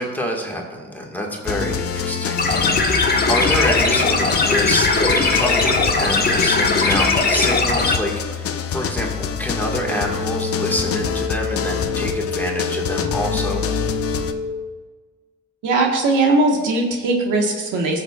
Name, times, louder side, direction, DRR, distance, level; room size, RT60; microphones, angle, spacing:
voice 1, 0.0-3.0 3.3-13.6, equal, 5° left, -1 dB, 1.8 m, -26 dB
sound 1, 1.5-14.3, left 7 dB, 50° left, 0.7 m, -26 dB
sound 2, 2.4-8.0, left 3 dB, 30° left, 1.3 m, -19 dB
sound 3, 9.7-14.7, left 4 dB, 35° right, 0.7 m, -28 dB
voice 2, 15.6-18.0, right 2 dB, 85° right, 1 dB, 1.6 m, -19 dB
19.0 x 6.7 x 2.4 m, 1.4 s
cardioid pair, 90°, 30 cm